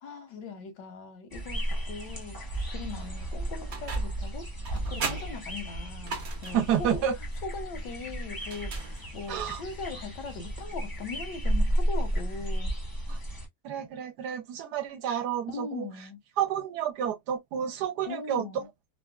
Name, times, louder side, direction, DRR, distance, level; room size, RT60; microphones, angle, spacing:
voice 1, 0.0-7.0 7.4-12.7 15.5-16.2 18.1-18.7, left 4 dB, 80° left, 1.5 m, -40 dB
sound 1, 1.3-13.5, right 1 dB, 20° left, 0.6 m, -33 dB
sound 2, 3.7-4.3 4.6-6.7 8.4-9.4, right 4 dB, 50° right, 0.8 m, -38 dB
voice 2, 6.5-7.2 9.3-9.6 13.1-13.2 13.6-15.9 16.4-18.7, right 9 dB, 70° right, 1.2 m, -30 dB
3.4 x 2.1 x 2.3 m
omnidirectional pair, 1.9 m